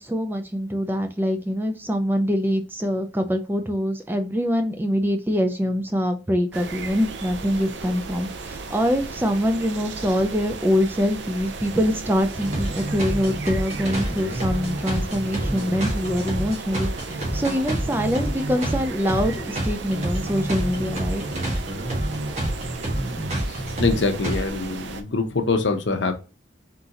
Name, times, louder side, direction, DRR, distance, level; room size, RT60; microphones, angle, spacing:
voice 1, 0.0-21.2, equal, 10° right, 5 dB, 0.4 m, -24 dB
sound 1, 6.5-25.0, right 4 dB, 65° right, 0.5 m, -36 dB
sound 2, 12.2-24.4, right 1 dB, 35° right, 1.4 m, -28 dB
voice 2, 23.5-26.1, left 3 dB, 70° left, 6 dB, 0.7 m, -24 dB
3.9 x 3.8 x 2.8 m, 0.30 s
head